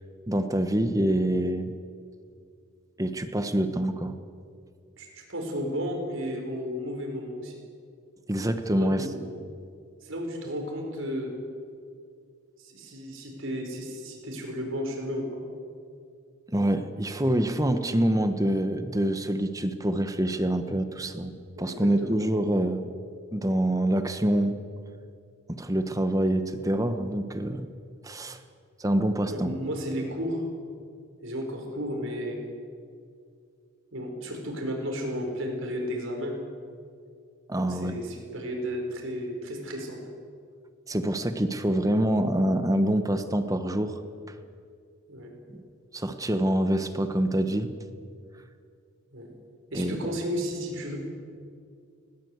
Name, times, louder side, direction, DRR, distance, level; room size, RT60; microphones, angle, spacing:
voice 1, 0.3-1.7 3.0-4.1 8.3-9.1 16.5-22.9 23.3-24.5 25.6-27.7 28.0-28.4 28.8-29.5 37.5-38.0 40.9-44.0 45.9-47.7 49.7-50.1, right 1 dB, 15° right, 9 dB, 1.0 m, -26 dB
voice 2, 5.0-7.5 8.7-9.2 10.0-11.3 12.6-15.4 21.6-22.2 29.3-30.4 31.2-32.4 33.9-36.3 37.6-40.0 45.1-45.3 49.1-49.3 49.7-51.0, equal, 65° right, 2 dB, 5.3 m, -33 dB
20.0 x 19.0 x 8.1 m, 2.2 s
head